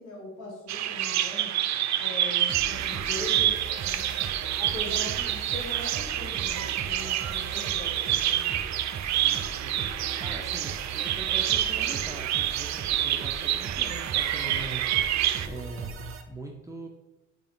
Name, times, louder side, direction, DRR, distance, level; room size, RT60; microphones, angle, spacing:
voice 1, 0.0-1.5 2.0-4.2 4.6-8.5, left 2 dB, 85° left, -2 dB, 2.1 m, -41 dB
Bird vocalization bird call bird song, 0.7-15.5, right 12 dB, 65° right, 0.5 m, -28 dB
sound 1, 2.5-16.2, right 5 dB, 45° right, 0.8 m, -39 dB
voice 2, 9.1-9.8 10.2-16.9, right 2 dB, 10° right, -1 dB, 0.7 m, -42 dB
5.6 x 4.7 x 3.9 m, 0.98 s
cardioid pair, 90°, 30 cm